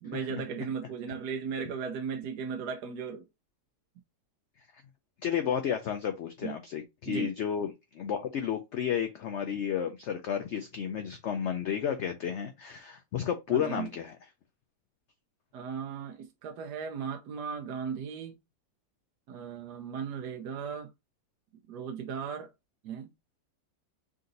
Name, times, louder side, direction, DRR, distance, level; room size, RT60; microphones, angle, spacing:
voice 1, 0.0-3.2 6.4-6.6 7.1-7.3 13.5-13.9 15.5-18.4 19.3-20.9 21.7-22.5 22.8-23.1, right 6 dB, 75° right, 1.1 m, -36 dB
voice 2, 5.2-14.2, left 8 dB, 85° left, 0.6 m, -32 dB
3.8 x 2.6 x 3.8 m
omnidirectional pair, 1.7 m